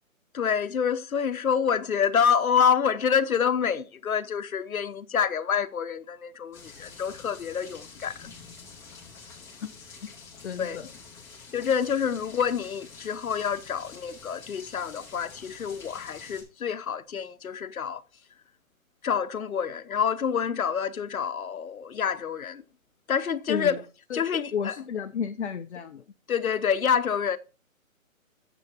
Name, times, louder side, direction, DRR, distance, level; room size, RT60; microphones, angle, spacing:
voice 1, 0.3-8.3 10.6-10.8 11.5-18.0 19.0-22.6 23.1-23.8 24.1-24.7 26.3-27.4, left 7 dB, 80° left, 1.0 m, -27 dB
sound 1, 6.5-16.4, left 5 dB, 5° left, 2.1 m, -47 dB
voice 2, 10.4-10.9 23.5-23.8 24.1-24.2 24.5-26.0, left 7 dB, 55° left, 0.9 m, -31 dB
7.3 x 6.3 x 4.3 m
hypercardioid pair, 155°, 42 cm